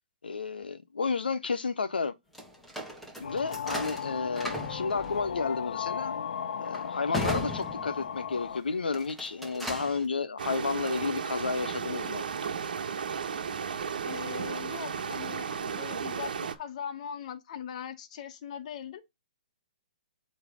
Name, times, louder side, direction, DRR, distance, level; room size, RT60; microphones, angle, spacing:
voice 1, 0.2-2.1 3.2-6.1 6.6-12.2, left 4 dB, 85° left, 1.3 m, -31 dB
sound 1, 2.3-8.4 8.8-10.1, left 1 dB, ahead, 1.7 m, -38 dB
sound 2, 3.2-8.6, left 8 dB, 65° left, 0.6 m, -36 dB
sound 3, 10.4-16.6, right 6 dB, 65° right, 1.3 m, -34 dB
voice 2, 14.0-19.0, left 8 dB, 45° left, 1.3 m, -40 dB
8.5 x 3.3 x 3.6 m
hypercardioid pair, 145°, 5 cm